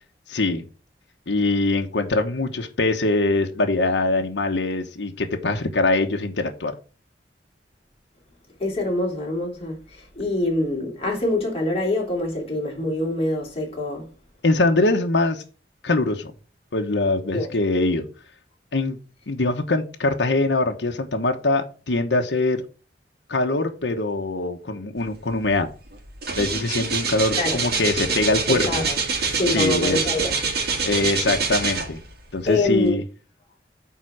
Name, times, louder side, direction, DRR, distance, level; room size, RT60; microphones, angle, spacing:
voice 1, 0.3-0.6 1.3-6.7 14.4-15.4 15.8-16.3 16.7-18.1 18.7-19.0 19.3-22.6 23.3-25.7 26.4-28.7 29.5-30.0 30.8-32.0 32.3-33.0, left 2 dB, 80° left, 1.0 m, -23 dB
voice 2, 8.6-14.1 17.3-17.5 27.4-27.6 28.5-28.9 29.3-30.4 32.5-33.0, left 2 dB, 35° left, 3.0 m, -25 dB
sound 1, 25.4-25.6 25.9-32.2 32.8-32.9, right 4 dB, 60° right, 1.8 m, -25 dB
8.9 x 3.8 x 6.2 m
head